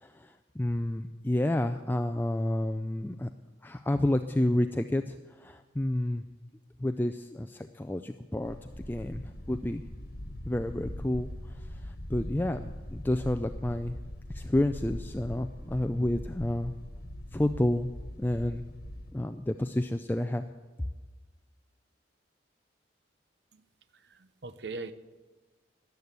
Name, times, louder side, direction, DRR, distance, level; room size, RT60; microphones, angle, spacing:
voice 1, 0.0-3.3 3.6-6.2 6.8-9.8 10.5-11.3 11.8-14.0 14.3-16.7 17.3-17.9 18.2-18.6 19.1-20.5, left 1 dB, 10° left, 7 dB, 0.4 m, -30 dB
sound 1, 8.4-19.1, left 1 dB, 50° left, 1.4 m, -41 dB
voice 2, 24.0-24.9, right 3 dB, 60° right, 13 dB, 0.7 m, -40 dB
14.0 x 11.0 x 8.1 m, 1.3 s
head